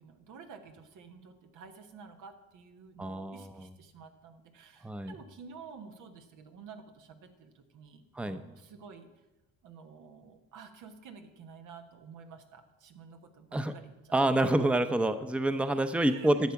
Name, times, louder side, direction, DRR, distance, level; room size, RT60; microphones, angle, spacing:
voice 1, 0.0-9.1 9.6-14.4 16.0-16.4, right 5 dB, 85° right, 6 dB, 1.3 m, -51 dB
voice 2, 3.0-3.5 4.8-5.1 8.2-8.4 13.5-13.7 14.1-16.5, right 1 dB, 5° right, 10 dB, 0.6 m, -27 dB
12.0 x 7.4 x 5.8 m, 1.1 s
cardioid pair, 90°, 30 cm